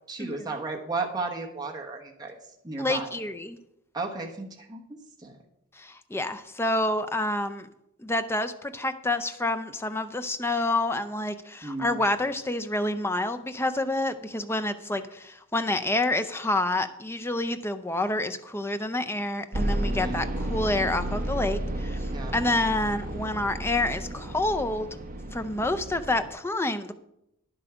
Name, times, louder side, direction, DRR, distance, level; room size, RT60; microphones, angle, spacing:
voice 1, 0.1-2.3 2.6-3.1 3.9-5.4 11.6-12.0 20.0-20.2 22.1-22.3, right 3 dB, 20° right, 0 dB, 1.2 m, -34 dB
voice 2, 2.8-3.6 5.8-7.7 8.0-24.9 25.3-26.9, left 2 dB, 10° left, 9 dB, 0.5 m, -28 dB
sound 1, 19.5-26.3, right 1 dB, 40° right, 0.9 m, -32 dB
10.0 x 7.8 x 5.0 m, 0.82 s
head